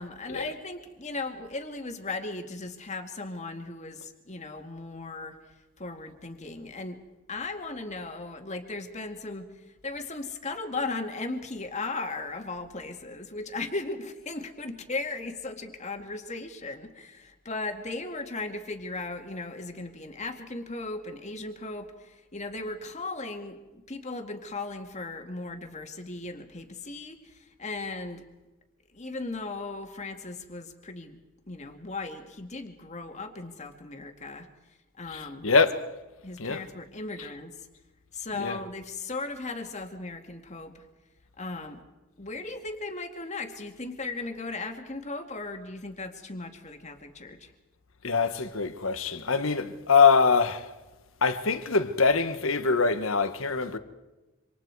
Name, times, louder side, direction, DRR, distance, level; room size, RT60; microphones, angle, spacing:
voice 1, 0.0-5.4 5.8-7.0 7.3-28.2 28.9-31.2 31.5-34.5 35.0-35.5 36.2-37.7 38.1-40.9 41.4-41.8 42.2-47.5, left 3 dB, 35° left, 2.2 m, -37 dB
voice 2, 35.1-35.8 36.4-36.6 38.4-38.6 48.0-50.7 51.2-53.8, left 5 dB, 75° left, 1.4 m, -24 dB
27.5 x 26.0 x 4.8 m
head